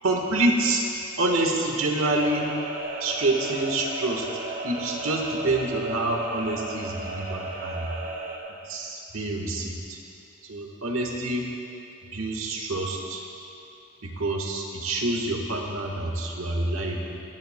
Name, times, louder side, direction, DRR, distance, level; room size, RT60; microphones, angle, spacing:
voice 1, 0.0-0.9 1.2-2.5 3.0-4.3 4.6-7.8 8.7-10.0 10.5-11.5 12.1-13.2 14.0-17.2, right 2 dB, 85° right, 1 dB, 1.4 m, -27 dB
sound 1, 2.2-8.4, right 2 dB, 40° right, 1.3 m, -34 dB
25.5 x 10.0 x 2.2 m, 2.7 s
head